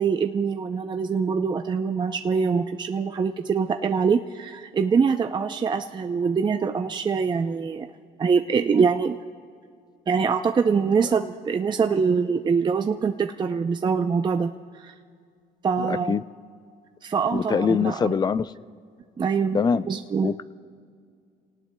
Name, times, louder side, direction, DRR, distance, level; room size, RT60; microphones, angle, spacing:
voice 1, 0.0-7.9 8.2-9.2 10.1-14.5 14.8-14.9 15.6-16.1 17.0-18.1 19.2-19.6 19.9-20.3, right 5 dB, 25° right, 6 dB, 0.5 m, -24 dB
voice 2, 15.8-16.2 17.3-18.5 19.5-19.9 20.2-20.4, left 6 dB, 25° left, 16 dB, 0.4 m, -23 dB
30.0 x 18.5 x 2.2 m, 2.2 s
cardioid pair, 110°, 17 cm